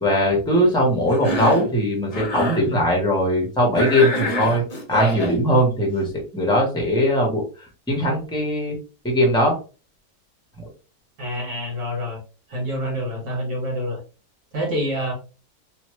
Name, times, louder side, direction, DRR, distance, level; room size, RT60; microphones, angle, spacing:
voice 1, 0.0-4.6 4.9-7.4 7.9-8.8 9.0-9.6 10.6-10.7, equal, 5° left, 0 dB, 0.8 m, -20 dB
Cough, 1.1-1.7 2.1-2.6 3.7-5.4, equal, 35° left, 0.7 m, -26 dB
voice 2, 11.2-12.2 12.5-14.0 14.5-15.1, equal, 55° right, 0 dB, 1.5 m, -27 dB
3.0 x 2.7 x 3.0 m, 0.34 s
omnidirectional pair, 1.8 m